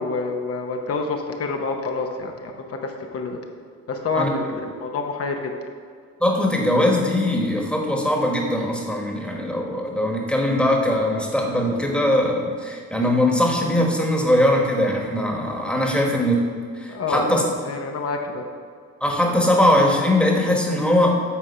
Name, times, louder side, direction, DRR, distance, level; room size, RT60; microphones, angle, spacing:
voice 1, 0.0-3.4 3.9-5.5 16.9-18.4, left 3 dB, 50° left, 3 dB, 0.8 m, -27 dB
voice 2, 6.2-16.4 16.8-17.4 19.0-21.2, left 1 dB, 5° left, 0 dB, 1.3 m, -21 dB
8.4 x 3.7 x 5.4 m, 2.1 s
cardioid pair, 90°, 30 cm